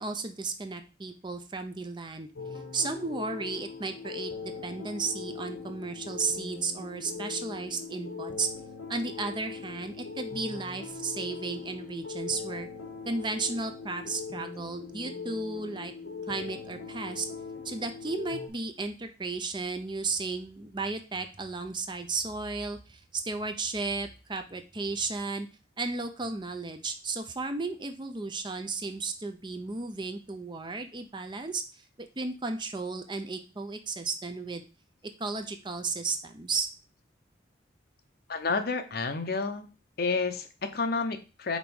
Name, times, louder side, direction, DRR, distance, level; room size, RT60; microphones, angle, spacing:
voice 1, 0.0-2.3 2.7-8.5 8.9-12.7 13.1-15.9 16.3-17.3 17.6-25.5 25.8-34.7 35.2-36.7, right 3 dB, 25° right, 7 dB, 0.5 m, -34 dB
sound 1, 2.4-18.5, left 5 dB, 90° left, 1.3 m, -40 dB
voice 2, 38.3-39.7 40.0-41.6, left 4 dB, 55° left, 8 dB, 0.7 m, -30 dB
5.2 x 4.0 x 4.7 m, 0.33 s
head